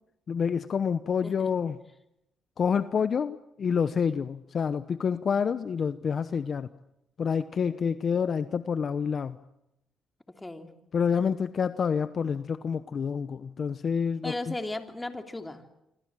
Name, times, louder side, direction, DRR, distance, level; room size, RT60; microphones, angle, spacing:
voice 1, 0.3-1.8 2.6-6.7 7.2-9.4 10.9-14.5, left 6 dB, 50° left, 12 dB, 0.9 m, -28 dB
voice 2, 10.4-10.7 14.2-15.6, left 2 dB, 15° left, 5 dB, 3.1 m, -36 dB
26.5 x 25.5 x 7.6 m, 0.86 s
cardioid pair, 90°, 0 cm